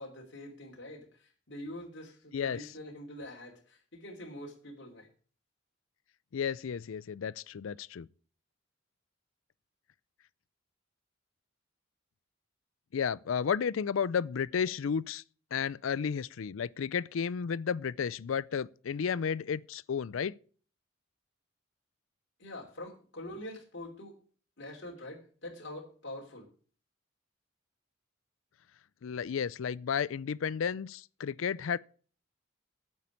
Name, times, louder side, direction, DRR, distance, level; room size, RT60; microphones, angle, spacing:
voice 1, 0.0-5.1 22.4-24.1 24.6-26.5, left 1 dB, 60° left, 3.0 m, -45 dB
voice 2, 6.3-8.1 12.9-15.2 15.5-20.3 29.0-31.8, left 7 dB, 75° left, 0.4 m, -32 dB
9.4 x 7.3 x 8.5 m
head